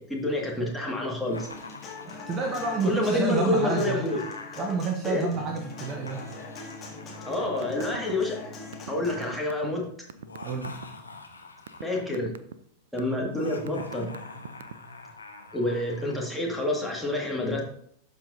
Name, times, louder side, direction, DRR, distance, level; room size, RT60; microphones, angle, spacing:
voice 1, 0.0-1.5 2.8-4.2 5.0-5.3 7.3-8.4 8.9-9.9 11.8-12.3 12.9-14.1 15.5-17.6, left 1 dB, ahead, -1 dB, 1.9 m, -28 dB
Laughter, 1.2-4.6 5.6-8.9 10.1-12.2 13.3-16.2, left 3 dB, 80° left, 0.9 m, -45 dB
Human voice / Acoustic guitar, 1.4-9.3, left 3 dB, 25° left, 1.9 m, -41 dB
voice 2, 2.0-4.0 4.6-6.2 10.4-10.7, right 4 dB, 30° right, 3 dB, 1.0 m, -29 dB
sound 1, 7.5-8.0 8.2-10.8 11.4-11.8 12.1-12.5 13.0-13.3 13.7-14.9, right 9 dB, 60° right, 0.4 m, -41 dB
12.5 x 4.8 x 2.7 m, 0.66 s
figure-of-eight pair, 90°, 0 cm